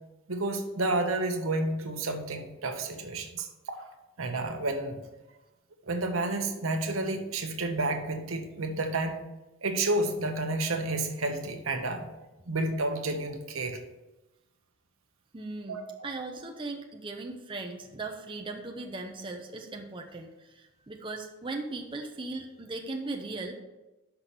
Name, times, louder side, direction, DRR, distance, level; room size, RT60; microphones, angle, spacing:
voice 1, 0.3-3.9 4.2-5.0 5.9-9.2 9.6-12.1 12.5-13.8 15.7-15.8, right 2 dB, 70° right, 4 dB, 1.1 m, -30 dB
voice 2, 15.3-23.6, right 3 dB, 25° right, 2 dB, 0.6 m, -38 dB
5.9 x 5.7 x 6.8 m, 1.0 s
head